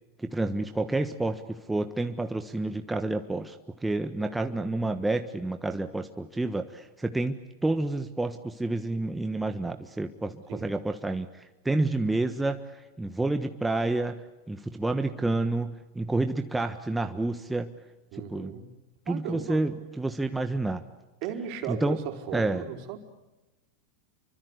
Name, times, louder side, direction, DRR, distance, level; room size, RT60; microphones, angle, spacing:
voice 1, 0.2-3.6 3.8-17.7 18.1-18.5 19.1-20.8 21.7-22.0 22.3-22.6, right 2 dB, 10° right, 6 dB, 1.3 m, -29 dB
voice 2, 18.1-18.7 19.0-19.6 21.2-23.0, right 9 dB, 55° right, 5 dB, 4.5 m, -36 dB
28.0 x 24.5 x 8.2 m, 1.1 s
hypercardioid pair, 110°, 0 cm